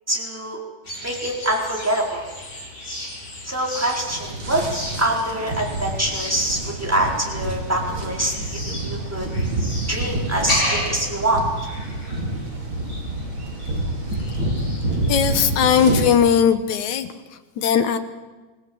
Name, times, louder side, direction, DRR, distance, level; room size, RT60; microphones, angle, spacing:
voice 1, 0.1-0.6 1.0-2.2 3.4-4.6 5.0-8.3 8.8-9.3 9.9-11.4, right 1 dB, 5° right, -1 dB, 4.3 m, -24 dB
sound 1, 0.8-15.6, left 1 dB, 30° left, 7.8 m, -34 dB
sound 2, 3.8-16.2, right 2 dB, 40° right, 4.2 m, -28 dB
voice 2, 15.1-17.1 17.6-18.0, left 8 dB, 70° left, 10 dB, 2.6 m, -18 dB
27.0 x 18.0 x 7.9 m, 1.2 s
omnidirectional pair, 3.7 m